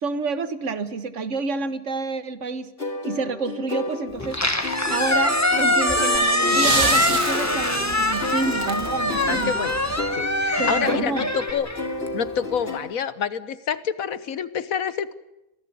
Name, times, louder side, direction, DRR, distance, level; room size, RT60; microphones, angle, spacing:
voice 1, 0.0-2.7 3.0-4.4 4.9-9.7 10.6-11.3, right 3 dB, 60° right, 12 dB, 1.6 m, -28 dB
sound 1, 2.8-12.8, left 3 dB, 40° left, 3.6 m, -32 dB
Squeak, 4.2-12.4, left 1 dB, 10° left, 1.6 m, -23 dB
sound 2, 6.1-10.3 11.5-11.6, right 4 dB, 75° right, 2.5 m, -29 dB
voice 2, 9.3-9.7 10.1-11.7 12.1-15.1, left 7 dB, 75° left, 15 dB, 1.5 m, -28 dB
26.0 x 17.0 x 8.6 m, 0.92 s
omnidirectional pair, 1.5 m